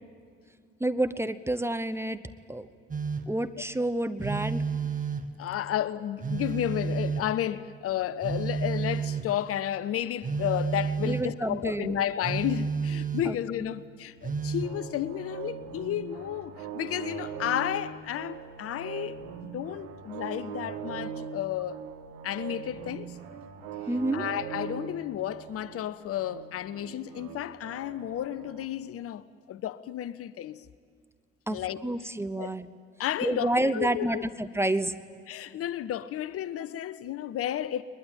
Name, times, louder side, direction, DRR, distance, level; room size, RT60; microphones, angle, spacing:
voice 1, 0.8-2.2 2.5-2.7 3.3-4.6 11.0-12.0 13.3-13.4 23.9-24.2 31.5-32.7 33.2-34.9, right 1 dB, 5° right, 0.8 m, -29 dB
Telephone, 2.9-3.4 4.2-5.4 6.2-7.4 8.2-9.5 10.2-11.4 12.2-13.5 14.2-14.8, right 5 dB, 20° right, 1.4 m, -31 dB
voice 2, 5.4-21.8 22.2-23.2 24.1-30.6 31.5-31.8 32.4-32.5 33.0-34.3 35.3-37.8, left 11 dB, 40° left, 0.8 m, -32 dB
sound 1, 14.6-28.7, right 7 dB, 60° right, 2.4 m, -41 dB
21.5 x 21.0 x 9.0 m
figure-of-eight pair, 55°, 35 cm